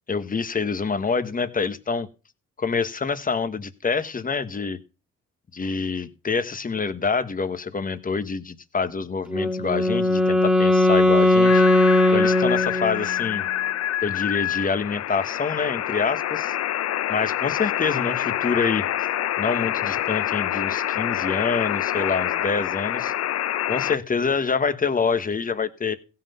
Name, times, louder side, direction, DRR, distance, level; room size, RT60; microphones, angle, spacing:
voice 1, 0.1-2.1 2.6-4.8 5.5-11.6 12.1-13.4 14.0-16.5 17.1-18.9 19.4-23.1 23.7-26.0, left 5 dB, 30° left, 11 dB, 1.2 m, -26 dB
Wind instrument woodwind instrument, 9.3-13.2, left 2 dB, 5° right, 2.1 m, -19 dB
sound 1, 11.4-24.0, left 12 dB, 55° left, 0.6 m, -26 dB
16.0 x 5.8 x 5.5 m, 0.33 s
cardioid pair, 90°, 30 cm